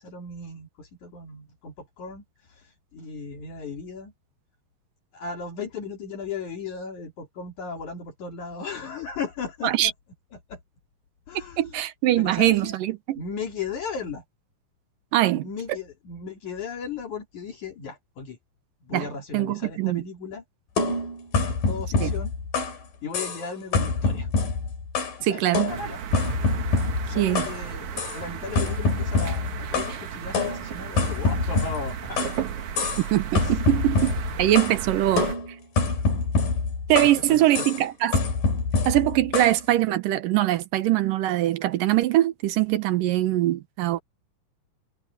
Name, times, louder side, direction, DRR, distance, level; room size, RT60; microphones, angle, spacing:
voice 1, 0.0-4.1 5.1-9.9 10.3-10.6 11.3-11.8 12.2-12.8 13.2-14.2 15.3-18.4 18.8-20.4 21.3-22.3 23.0-24.3 25.2-26.0 27.0-32.3 33.3-33.7 34.0-34.2 37.0-37.7, left 5 dB, 65° left, 3.9 m, -36 dB
voice 2, 11.6-13.2 15.1-15.5 18.9-19.1 19.3-20.0 22.0-22.1 25.2-25.7 27.2-27.4 33.0-34.1 34.4-35.3 36.9-38.2 38.9-44.0, right 14 dB, 85° right, 2.7 m, -22 dB
sound 1, 20.8-22.8 23.1-23.5 23.7-25.2 25.5-27.6 28.0-28.2 28.6-30.0 30.3-32.4 32.8-33.1 33.4-34.8 35.2-37.2 37.5-37.8 38.1-39.6, left 4 dB, 80° left, 6.0 m, -26 dB
sound 2, 25.7-35.4, right 8 dB, 65° right, 2.7 m, -34 dB
omnidirectional pair, 3.8 m